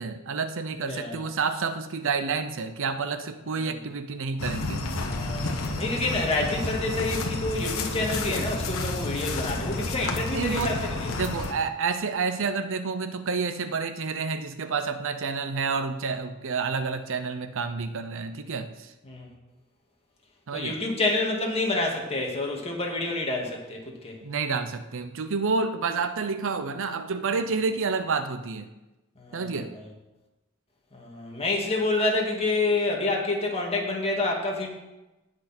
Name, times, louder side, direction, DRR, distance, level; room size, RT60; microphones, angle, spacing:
voice 1, 0.0-4.9 10.0-10.7 11.2-18.9 20.5-20.8 24.2-28.7 29.3-29.7, right 4 dB, 60° right, 10 dB, 0.7 m, -29 dB
voice 2, 0.9-1.2 3.5-3.8 5.0-11.1 19.1-19.3 20.5-24.2 29.2-29.6 30.9-34.7, left 2 dB, 30° left, -1 dB, 2.2 m, -28 dB
sound 1, 4.4-11.5, left 2 dB, 70° left, 1.3 m, -31 dB
sound 2, 4.6-10.0, left 1 dB, 45° left, 1.2 m, -39 dB
18.0 x 6.2 x 4.3 m, 1.0 s
head